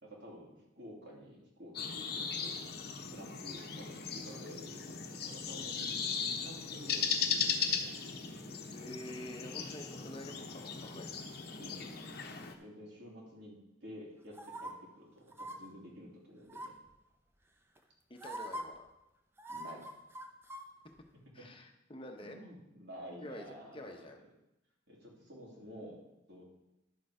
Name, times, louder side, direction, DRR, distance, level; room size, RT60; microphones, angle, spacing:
voice 1, 0.0-2.7 3.1-8.0 11.6-16.7 19.5-19.8 21.1-21.4 22.2-24.0 24.9-26.4, equal, 60° right, -2 dB, 2.9 m, -51 dB
sound 1, 1.7-12.5, left 6 dB, 55° left, 1.0 m, -38 dB
voice 2, 8.7-11.2 18.1-18.9 21.3-22.4 23.2-23.5 23.7-24.2, left 1 dB, 30° left, 4 dB, 1.0 m, -47 dB
sound 2, 14.3-14.7 15.3-15.6 16.5-16.9 17.8-17.9 18.2-18.6 19.4-20.6 21.0-21.1, right 1 dB, 10° right, 0.7 m, -43 dB
11.0 x 6.8 x 5.0 m, 0.92 s
head